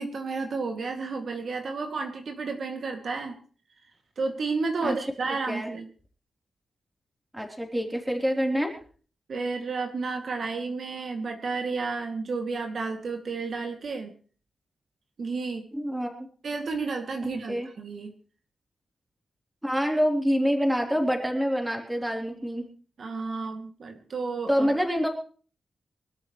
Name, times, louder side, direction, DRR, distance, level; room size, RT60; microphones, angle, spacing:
voice 1, 0.0-3.4 4.2-5.8 9.3-14.1 15.2-15.6 16.4-18.1 23.0-24.7, right 4 dB, 55° right, 4 dB, 2.3 m, -31 dB
voice 2, 5.2-5.7 7.3-8.8 15.7-16.3 17.5-17.7 19.6-22.7 24.5-25.1, equal, 5° right, 2 dB, 3.6 m, -26 dB
24.5 x 13.0 x 3.2 m, 0.40 s
wide cardioid pair, 145°, 0 cm